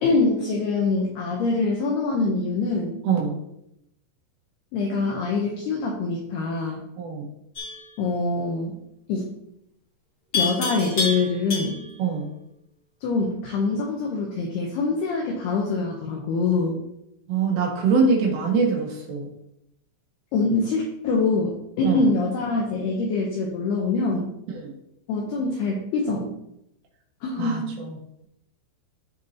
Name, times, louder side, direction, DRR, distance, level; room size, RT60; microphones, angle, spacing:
voice 1, 0.0-3.0 4.7-6.8 8.0-8.8 9.1-9.4 10.3-11.8 13.0-16.8 20.3-24.3 25.1-26.3 27.2-27.7, left 3 dB, 80° left, -1 dB, 2.3 m, -24 dB
voice 2, 3.1-3.4 7.0-7.3 12.0-12.3 17.3-19.3 21.8-22.0 24.6-24.7 27.4-27.9, right 5 dB, 80° right, -1 dB, 4.3 m, -23 dB
Livestock farm animals working animals, 7.6-7.9 10.3-12.0, left 3 dB, 40° left, 1.4 m, -28 dB
14.0 x 4.8 x 2.8 m, 0.80 s
omnidirectional pair, 5.8 m